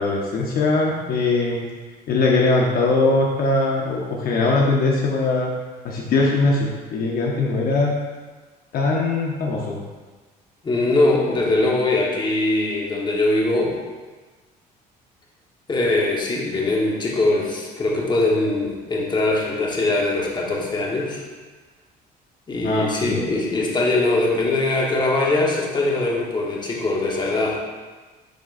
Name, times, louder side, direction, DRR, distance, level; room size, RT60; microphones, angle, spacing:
voice 1, 0.0-1.7 2.1-5.5 5.8-7.9 8.7-9.8 22.6-23.2, left 3 dB, 60° left, -2 dB, 0.9 m, -21 dB
voice 2, 10.6-13.8 15.7-21.2 22.5-27.6, left 2 dB, 25° left, -2 dB, 1.3 m, -21 dB
10.5 x 3.7 x 2.6 m, 1.3 s
cardioid pair, 110°, 17 cm